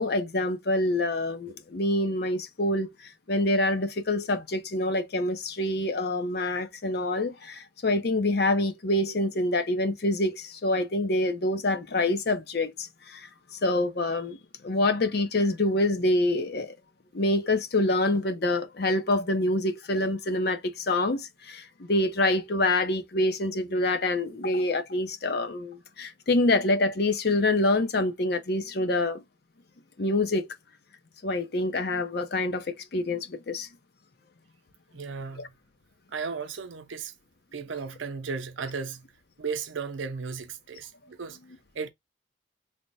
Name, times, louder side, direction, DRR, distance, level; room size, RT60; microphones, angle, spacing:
voice 1, 0.0-13.3 13.6-14.4 14.6-16.7 17.1-29.2 30.0-30.5 31.2-33.7 35.4-35.5, left 2 dB, 55° left, 0.6 m, -26 dB
voice 2, 34.9-35.5 36.1-37.1 37.5-39.0 39.4-41.4 41.7-41.9, right 5 dB, 75° right, 0.6 m, -35 dB
3.3 x 2.1 x 4.0 m
head